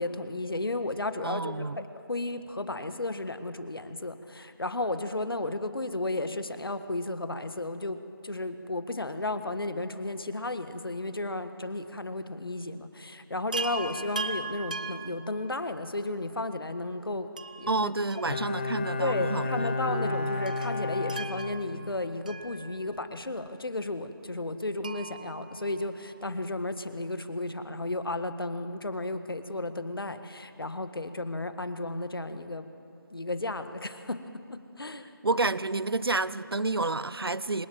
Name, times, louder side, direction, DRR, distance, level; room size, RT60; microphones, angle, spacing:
voice 1, 0.0-17.3 17.6-17.9 19.0-32.7 33.1-34.2 34.5-35.0, left 2 dB, 70° left, 10 dB, 1.6 m, -33 dB
voice 2, 1.2-1.8 17.7-20.3 35.2-37.7, right 3 dB, 80° right, 17 dB, 0.7 m, -30 dB
Chime, 13.5-15.9 17.4-18.9 19.2-19.3 20.5-23.2 24.8-26.4 28.0-28.1 28.3-28.4, right 4 dB, 20° right, 0.5 m, -40 dB
Bowed string instrument, 18.3-22.0 22.3-22.4, left 3 dB, 25° left, 1.0 m, -32 dB
27.0 x 17.5 x 7.6 m, 2.7 s
figure-of-eight pair, 165°, 12 cm